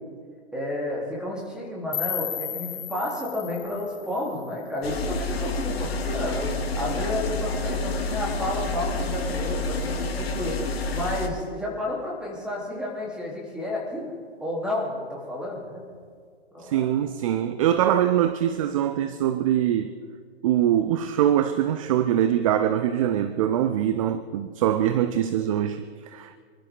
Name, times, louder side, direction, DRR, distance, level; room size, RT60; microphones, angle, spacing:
voice 1, 0.5-14.1 14.4-15.8 16.5-16.9, left 1 dB, 5° right, 3.7 m, -31 dB
sound 1, 1.9-4.9, left 11 dB, 50° left, 1.1 m, -34 dB
sound 2, 4.8-11.3, left 2 dB, 65° left, 2.3 m, -28 dB
voice 2, 16.6-19.9 20.4-26.4, right 10 dB, 30° right, 0.6 m, -23 dB
26.5 x 12.5 x 3.9 m
figure-of-eight pair, 130°, 33 cm